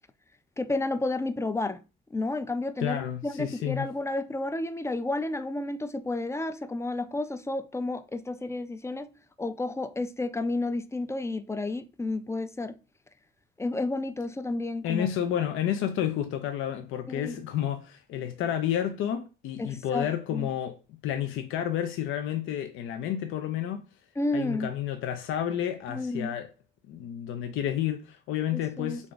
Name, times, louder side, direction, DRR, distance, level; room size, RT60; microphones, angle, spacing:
voice 1, 0.6-1.8 2.1-9.1 9.4-12.8 13.6-15.1 17.1-17.4 19.6-20.5 24.2-24.7 25.9-26.3 28.5-29.0, left 2 dB, 15° left, 0.3 m, -31 dB
voice 2, 2.8-3.9 14.8-23.8 24.3-26.5 26.9-29.1, left 10 dB, 85° left, 0.4 m, -30 dB
3.4 x 2.5 x 3.8 m
cardioid pair, 90°, 20 cm